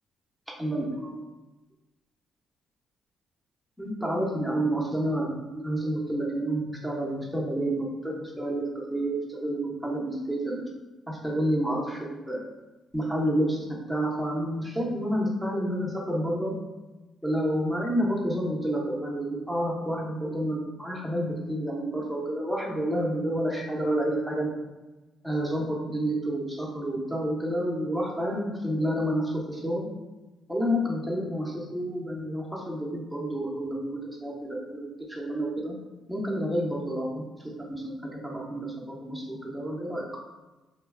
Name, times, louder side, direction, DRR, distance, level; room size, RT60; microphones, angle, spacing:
voice 1, 0.6-1.2 3.8-8.6 8.9-10.6 11.1-12.4 12.9-16.5 17.2-24.5 25.2-29.9 30.5-35.7 36.1-37.2 37.7-40.1, right 1 dB, ahead, -3 dB, 0.5 m, -29 dB
3.0 x 2.4 x 2.3 m, 1.1 s
cardioid pair, 145°, 0 cm